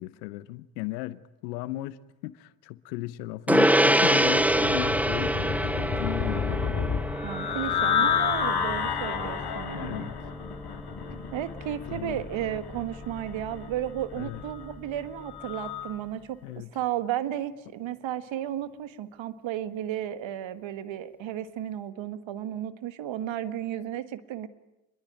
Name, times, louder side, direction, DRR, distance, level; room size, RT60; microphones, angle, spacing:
voice 1, 0.0-6.5 9.4-10.2 11.9-12.2 14.1-14.4 16.4-16.7, left 17 dB, 90° left, 0.9 m, -36 dB
Gong, 3.5-13.2, right 1 dB, 5° right, 1.1 m, -27 dB
sound 1, 4.1-15.9, left 7 dB, 50° left, 2.6 m, -31 dB
voice 2, 7.2-10.1 11.1-16.4 16.7-24.5, right 11 dB, 65° right, 1.6 m, -33 dB
28.0 x 21.5 x 9.0 m
hypercardioid pair, 45°, 48 cm